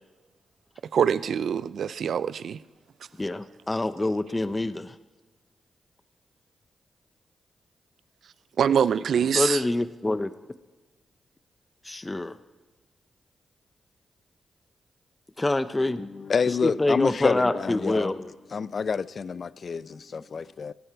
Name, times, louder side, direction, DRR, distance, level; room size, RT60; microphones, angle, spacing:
voice 1, 0.9-2.6 8.6-9.6, right 7 dB, 75° right, 0.5 m, -24 dB
voice 2, 3.2-4.9 9.3-10.3 11.8-12.4 15.4-16.1 16.6-18.3, left 2 dB, 25° left, 0.8 m, -26 dB
voice 3, 16.0-18.1 18.5-20.7, left 5 dB, 60° left, 0.5 m, -28 dB
19.0 x 15.5 x 4.7 m
supercardioid pair, 45°, 0 cm